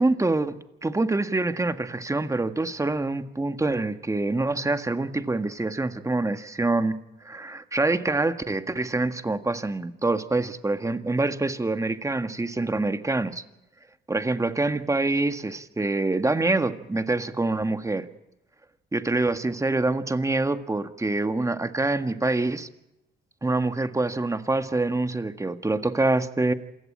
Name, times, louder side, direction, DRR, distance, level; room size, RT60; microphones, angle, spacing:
voice 1, 0.0-7.0 7.2-13.4 14.1-18.1 18.9-22.7 23.4-26.5, right 2 dB, 15° right, 9 dB, 1.7 m, -25 dB
27.0 x 16.5 x 8.7 m, 0.91 s
cardioid pair, 90°, 20 cm